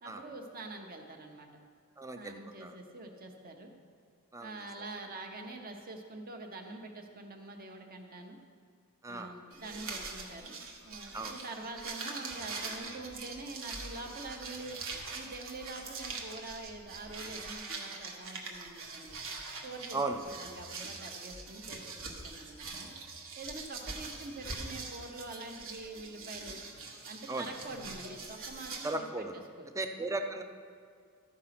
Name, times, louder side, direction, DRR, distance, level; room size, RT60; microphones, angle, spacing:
voice 1, 0.0-1.5 2.1-3.7 4.4-8.4 9.1-10.6 10.8-14.8 15.1-19.2 19.6-20.0 20.2-22.9 23.4-26.6 27.0-29.3 29.6-29.7, right 2 dB, 40° right, 3 dB, 1.0 m, -45 dB
voice 2, 2.0-2.8 4.3-4.7 9.0-9.4 11.1-11.4 19.9-20.2 27.3-27.5 28.8-29.4 29.7-30.4, right 2 dB, 15° right, 5 dB, 0.5 m, -36 dB
sound 1, 9.5-28.9, right 3 dB, 60° right, 1.2 m, -43 dB
13.0 x 5.0 x 5.9 m, 2.2 s
head